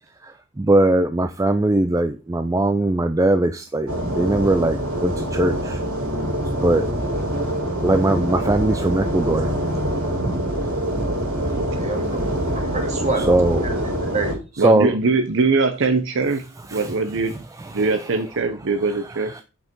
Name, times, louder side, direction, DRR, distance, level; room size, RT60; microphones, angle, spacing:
voice 1, 0.2-5.8 6.6-6.9 7.8-9.5 13.2-13.7 14.6-14.9 16.7-16.9 17.6-17.9 19.3-19.4, right 2 dB, 15° right, 9 dB, 0.4 m, -20 dB
sound 1, 3.9-14.4, right 1 dB, 90° right, 5.8 m, -25 dB
voice 2, 11.7-13.3 13.6-14.3, right 3 dB, 30° right, 3 dB, 2.2 m, -28 dB
voice 3, 14.6-16.4 16.7-17.4 17.7-19.3, right 3 dB, 60° right, 9 dB, 0.7 m, -22 dB
8.2 x 5.5 x 4.5 m, 0.31 s
head